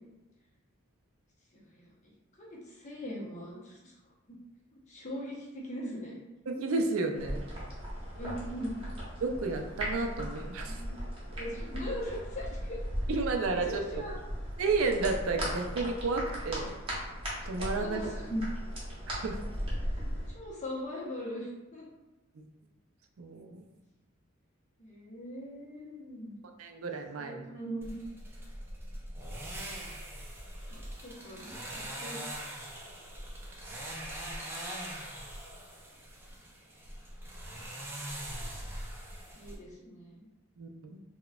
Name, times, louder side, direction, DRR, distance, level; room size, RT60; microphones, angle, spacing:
voice 1, 1.5-1.9 2.4-4.4 4.7-6.2 8.2-8.8 10.2-11.0 11.4-12.8 13.2-14.1 17.8-18.5 20.3-21.9 24.8-26.4 27.2-28.0 30.7-32.2 39.3-40.3, equal, 35° left, -5 dB, 0.7 m, -40 dB
voice 2, 6.5-7.4 9.2-10.8 13.1-13.8 14.6-16.7 17.5-18.0 19.2-19.4 23.2-23.6 26.6-27.4 40.6-41.0, right 3 dB, 80° right, 4 dB, 0.4 m, -31 dB
sound 1, 7.1-20.3, equal, 25° right, 0.8 m, -37 dB
sound 2, 27.8-39.6, right 1 dB, 10° right, 0.4 m, -42 dB
3.9 x 2.2 x 2.3 m, 1.1 s
head